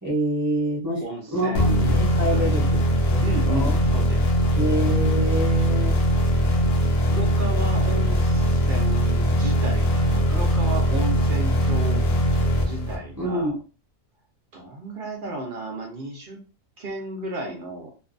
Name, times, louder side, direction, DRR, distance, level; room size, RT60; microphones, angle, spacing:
voice 1, 0.0-1.0 1.3-1.7 2.0-2.6 3.1-3.8 4.6-6.0 13.2-13.5, equal, 15° right, -6 dB, 0.6 m, -26 dB
voice 2, 1.0-2.6 3.2-4.2 7.1-12.0 12.6-13.5 14.5-16.4 16.8-17.9, right 2 dB, 55° right, 1 dB, 0.6 m, -33 dB
sound 1, 1.5-13.3, equal, 60° left, 0.7 m, -21 dB
2.6 x 2.2 x 2.5 m, 0.35 s
omnidirectional pair, 1.5 m